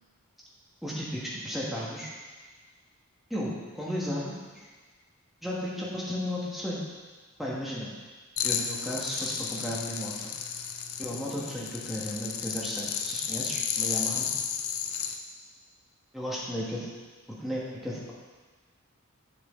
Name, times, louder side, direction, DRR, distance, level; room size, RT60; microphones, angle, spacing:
voice 1, 0.8-2.1 3.3-4.7 5.4-6.8 7.4-7.9 8.4-10.3 11.0-14.3 16.1-16.9 17.3-18.1, equal, ahead, -6 dB, 1.4 m, -34 dB
sound 1, 8.4-15.2, left 8 dB, 75° left, 0.6 m, -33 dB
7.7 x 6.9 x 3.7 m, 1.4 s
head